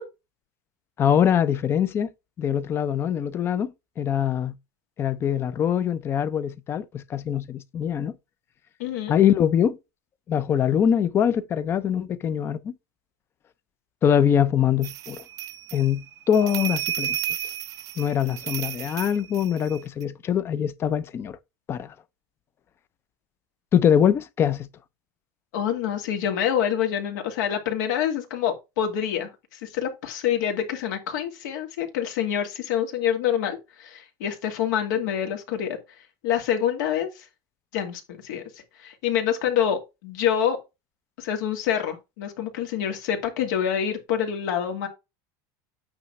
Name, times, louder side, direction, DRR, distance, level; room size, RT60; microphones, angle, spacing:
voice 1, 1.0-2.1 2.4-3.7 4.0-4.5 5.0-8.1 9.1-9.8 10.3-12.7 14.0-15.2 15.7-17.2 18.0-21.4 21.7-21.9 23.7-24.7, left 9 dB, 25° left, 0.6 m, -23 dB
voice 2, 8.8-9.1 25.5-35.8 36.2-37.3 37.7-40.6 41.2-44.9, left 9 dB, 75° left, 2.4 m, -26 dB
sound 1, 14.8-20.0, right 11 dB, 35° right, 0.4 m, -33 dB
8.8 x 3.1 x 5.3 m
supercardioid pair, 160°, 10 cm